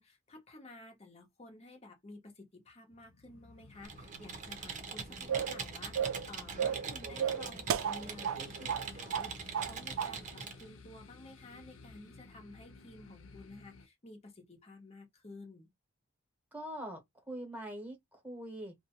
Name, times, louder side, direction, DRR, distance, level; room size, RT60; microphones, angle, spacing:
voice 1, 0.0-15.7, left 2 dB, 30° left, 0.9 m, -53 dB
sound 1, 2.9-13.9, left 3 dB, 65° left, 0.5 m, -55 dB
Computer keyboard, 3.8-10.6, right 5 dB, 40° right, 0.7 m, -43 dB
sound 2, 5.3-5.6 5.9-6.3 6.6-6.9 7.2-8.4 8.7-8.9 9.1-9.7 10.0-10.1, right 8 dB, 75° right, 0.3 m, -33 dB
voice 2, 16.5-18.7, right 1 dB, 10° right, 1.1 m, -43 dB
2.6 x 2.2 x 2.9 m
head